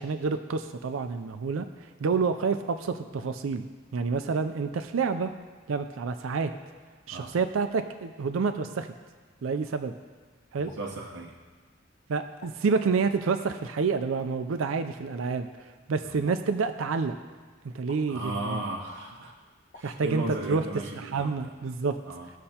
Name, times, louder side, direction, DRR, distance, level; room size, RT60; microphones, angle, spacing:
voice 1, 0.0-1.7 2.0-3.7 3.9-5.3 5.7-6.5 7.1-8.9 9.4-9.9 10.5-10.7 12.1-17.1 17.6-18.3 19.8-20.6 21.0-22.0, right 4 dB, 90° right, 9 dB, 0.4 m, -28 dB
sound 1, 10.6-10.8 12.4-12.5 14.2-14.3 16.2-16.4 17.9-18.0 19.7-19.9, left 2 dB, 50° left, 1.3 m, -50 dB
voice 2, 10.6-11.3 16.0-16.2 18.1-19.3 19.7-21.5 22.1-22.3, right 2 dB, 70° right, -2 dB, 0.8 m, -36 dB
18.0 x 6.5 x 2.8 m, 1.4 s
head